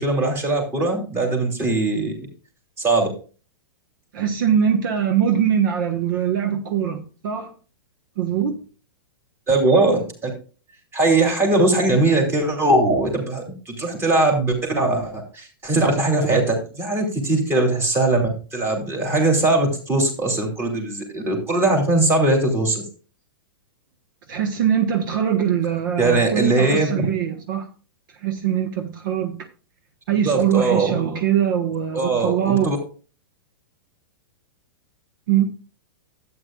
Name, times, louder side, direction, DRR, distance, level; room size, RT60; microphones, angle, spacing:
voice 1, 0.0-2.1 2.8-3.1 9.5-10.3 10.9-18.2 18.5-22.8 26.0-27.1 30.2-30.9 31.9-32.8, right 2 dB, 20° right, 3.1 m, -20 dB
voice 2, 4.1-7.5 8.2-8.6 24.3-27.7 28.1-29.4 30.1-32.7 35.3-35.5, right 9 dB, 60° right, 1.2 m, -22 dB
12.0 x 8.9 x 2.4 m
hypercardioid pair, 145°, 12 cm